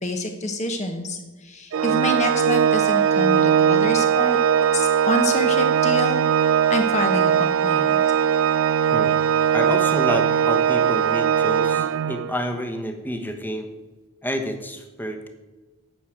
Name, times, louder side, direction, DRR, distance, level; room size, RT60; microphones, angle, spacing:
voice 1, 0.0-4.4 4.7-6.2 6.7-8.0, left 1 dB, 30° left, 4 dB, 1.0 m, -27 dB
Organ, 1.7-12.5, right 8 dB, 60° right, 0.3 m, -20 dB
voice 2, 9.5-13.7 14.2-15.3, equal, 10° left, 5 dB, 1.1 m, -29 dB
9.3 x 6.4 x 8.7 m, 1.2 s
head